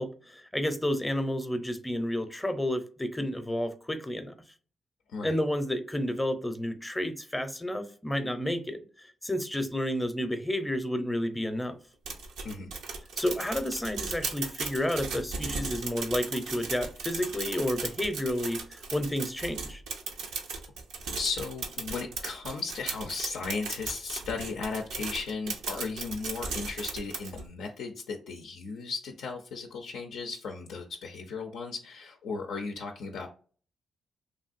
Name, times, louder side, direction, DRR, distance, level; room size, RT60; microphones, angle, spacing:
voice 1, 0.0-4.3 5.2-11.8 13.2-19.8, left 1 dB, 15° left, 0.6 m, -31 dB
voice 2, 5.1-5.4 12.4-12.7 21.1-33.3, left 4 dB, 80° left, 0.4 m, -36 dB
sound 1, 12.0-27.5, right 4 dB, 85° right, 0.6 m, -37 dB
3.2 x 2.5 x 2.4 m
supercardioid pair, 55°, 0 cm